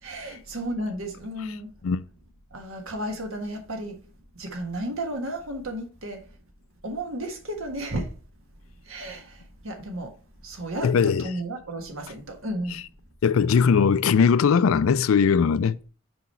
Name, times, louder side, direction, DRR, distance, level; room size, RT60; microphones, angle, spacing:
voice 1, 0.0-1.7 2.5-4.0 4.3-6.3 6.8-8.1 8.8-10.1 10.4-12.8, right 1 dB, 75° right, 1.5 m, -33 dB
voice 2, 10.8-11.2 13.2-15.8, left 6 dB, 75° left, 0.4 m, -20 dB
6.1 x 5.0 x 4.3 m
head